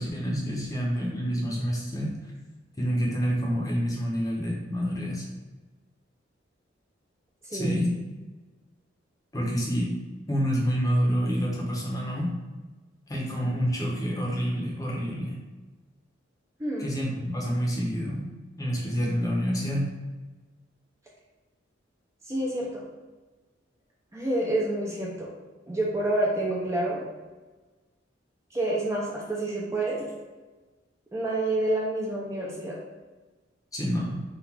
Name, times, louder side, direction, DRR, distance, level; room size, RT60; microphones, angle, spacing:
voice 1, 0.0-2.3 2.8-5.3 7.5-8.0 9.3-9.9 10.3-12.3 13.1-15.4 16.8-18.3 18.6-19.9 33.7-34.2, equal, 20° left, -3 dB, 0.8 m, -28 dB
voice 2, 22.3-22.8 24.1-25.3 25.7-27.1 28.5-30.1 31.1-32.8, right 1 dB, 15° right, -4 dB, 0.5 m, -28 dB
3.9 x 2.5 x 4.4 m, 1.3 s
head